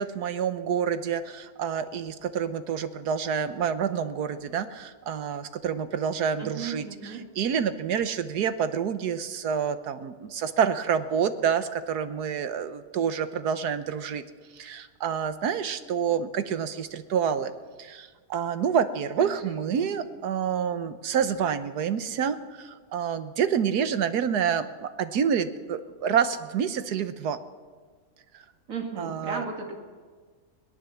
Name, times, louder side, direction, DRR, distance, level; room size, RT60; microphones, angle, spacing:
voice 1, 0.0-14.2 14.5-17.5 17.8-27.4 28.3-28.4 29.0-29.4, right 7 dB, 90° right, 11 dB, 1.5 m, -28 dB
voice 2, 6.4-7.2 19.2-19.9 28.7-29.8, right 4 dB, 60° right, 3 dB, 2.8 m, -36 dB
21.5 x 18.5 x 7.1 m, 1.5 s
omnidirectional pair, 1.6 m